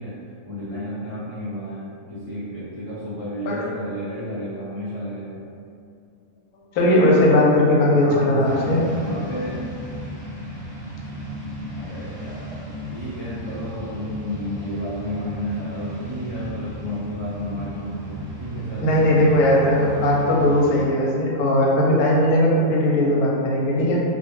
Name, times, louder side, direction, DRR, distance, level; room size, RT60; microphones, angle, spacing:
voice 1, 0.0-5.5 7.9-9.7 11.7-19.4, equal, 20° right, -14 dB, 0.6 m, -32 dB
voice 2, 6.7-8.8 18.8-24.0, left 1 dB, 85° left, -4 dB, 1.1 m, -18 dB
sound 1, 8.4-20.9, right 1 dB, 50° left, 1.0 m, -35 dB
2.5 x 2.1 x 3.0 m, 2.4 s
omnidirectional pair, 1.6 m